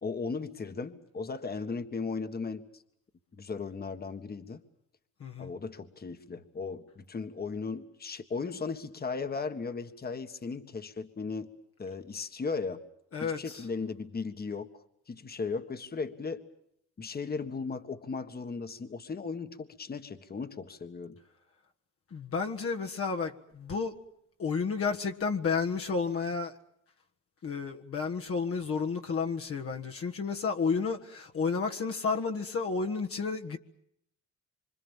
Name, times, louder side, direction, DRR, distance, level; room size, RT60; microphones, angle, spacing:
voice 1, 0.0-2.7 3.4-4.6 5.4-11.5 11.8-12.8 13.2-14.7 15.1-16.4 17.0-21.2, left 4 dB, 30° left, 1.6 m, -36 dB
voice 2, 5.2-5.5 13.1-13.7 22.1-24.0 24.4-26.6 27.4-33.6, left 5 dB, 50° left, 1.6 m, -31 dB
26.0 x 25.5 x 7.3 m
cardioid pair, 90°, 30 cm